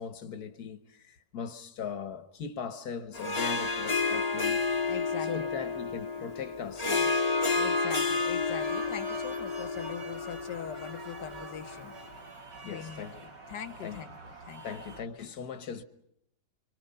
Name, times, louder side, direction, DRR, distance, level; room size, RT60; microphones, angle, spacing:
voice 1, 0.0-4.6 5.2-7.3 12.7-13.3 13.8-14.1 14.6-15.8, left 6 dB, 65° left, 1.7 m, -39 dB
Harp, 3.1-11.8, left 4 dB, 25° left, 1.6 m, -30 dB
voice 2, 4.9-5.5 7.6-12.0 12.6-13.1 13.5-14.1 14.5-14.6, left 9 dB, 85° left, 1.8 m, -42 dB
sound 1, 7.3-15.0, right 3 dB, 80° right, 3.2 m, -46 dB
29.0 x 25.0 x 5.6 m
omnidirectional pair, 1.8 m